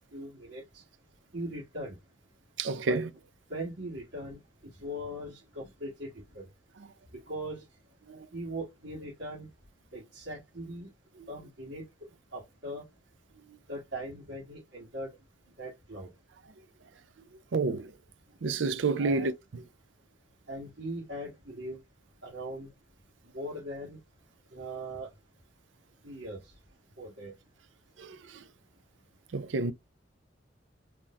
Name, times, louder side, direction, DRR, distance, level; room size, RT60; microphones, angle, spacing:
voice 1, 0.1-0.8 1.3-2.0 2.8-3.0 3.5-6.5 7.1-7.6 8.3-9.5 9.9-10.9 11.3-11.8 12.3-12.8 13.7-15.1 15.6-16.1 19.0-19.3 20.5-21.8 22.2-22.7 23.2-24.0 24.5-25.1 26.0-26.5 27.0-27.3, right 1 dB, 65° right, 1.6 m, -40 dB
voice 2, 2.6-3.1 8.1-8.3 17.5-17.9 18.4-19.3 28.0-28.2 29.3-29.7, right 3 dB, 80° right, 0.5 m, -29 dB
3.9 x 2.9 x 2.5 m
head